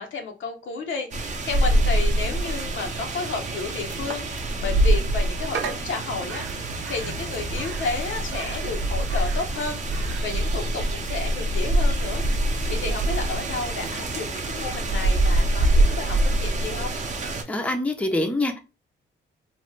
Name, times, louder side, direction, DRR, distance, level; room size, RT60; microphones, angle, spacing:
voice 1, 0.0-9.8 10.2-12.2 12.7-17.0, left 4 dB, 75° left, 0.9 m, -32 dB
sound 1, 1.1-17.4, right 1 dB, 35° right, 0.7 m, -25 dB
sound 2, 1.6-14.0, right 4 dB, 75° right, 0.7 m, -39 dB
voice 2, 17.5-18.6, left 1 dB, 5° left, 0.6 m, -25 dB
3.1 x 2.2 x 3.1 m
cardioid pair, 95°, 20 cm